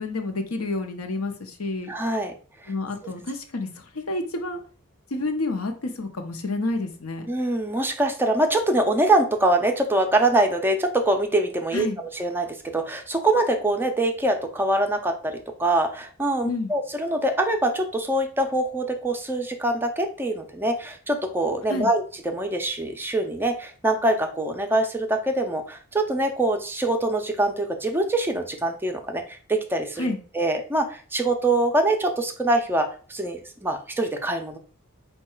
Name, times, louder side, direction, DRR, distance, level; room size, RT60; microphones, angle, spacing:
voice 1, 0.0-1.9 2.7-4.6 5.1-7.3 11.7-12.0 16.4-16.7 21.7-21.9 30.0-30.2, left 2 dB, 80° left, 5 dB, 0.7 m, -29 dB
voice 2, 1.9-2.3 2.6-2.7 7.3-11.9 12.1-22.0 22.3-34.6, right 1 dB, 10° right, 4 dB, 0.4 m, -24 dB
4.6 x 2.2 x 4.3 m, 0.40 s
head